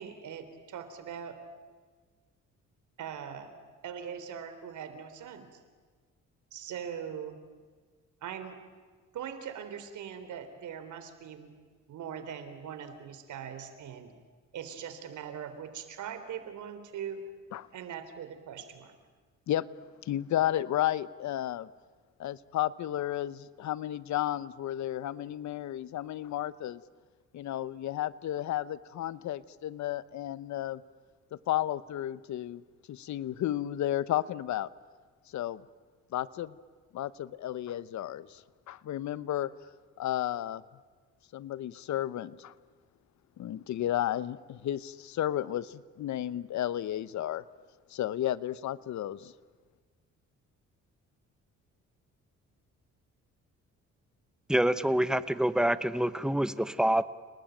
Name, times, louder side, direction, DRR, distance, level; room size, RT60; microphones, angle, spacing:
voice 1, 0.0-1.4 3.0-3.5 3.8-5.6 6.5-7.4 8.2-8.6 9.1-11.5 11.9-14.1 14.5-17.3 17.7-18.9, right 8 dB, 75° right, 9 dB, 3.6 m, -41 dB
voice 2, 20.0-21.7 22.2-26.8 27.3-30.8 31.5-34.7 35.3-35.6 36.1-36.5 36.9-39.5 40.0-40.6 41.3-42.5 43.4-47.4 47.9-49.3, left 12 dB, 70° left, 17 dB, 0.9 m, -33 dB
voice 3, 54.5-57.0, right 1 dB, ahead, 14 dB, 1.0 m, -26 dB
30.0 x 20.0 x 9.1 m, 1.5 s
cardioid pair, 90°, 30 cm